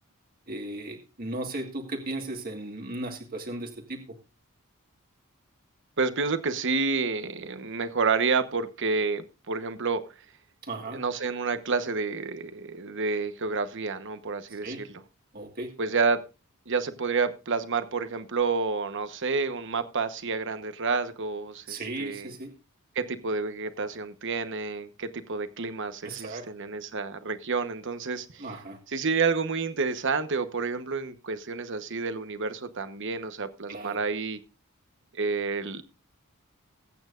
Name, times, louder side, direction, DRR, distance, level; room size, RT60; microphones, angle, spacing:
voice 1, 0.5-4.0 10.6-11.0 14.5-14.8 15.3-15.7 21.7-22.5 26.0-26.5 28.4-28.8 33.7-34.0, right 2 dB, 45° right, 3 dB, 1.7 m, -36 dB
voice 2, 6.0-10.1 10.9-14.9 15.8-16.2 16.7-22.3 22.9-28.5 28.9-34.4 35.1-35.8, right 4 dB, 60° right, 10 dB, 1.1 m, -29 dB
21.0 x 8.8 x 2.5 m, 0.31 s
head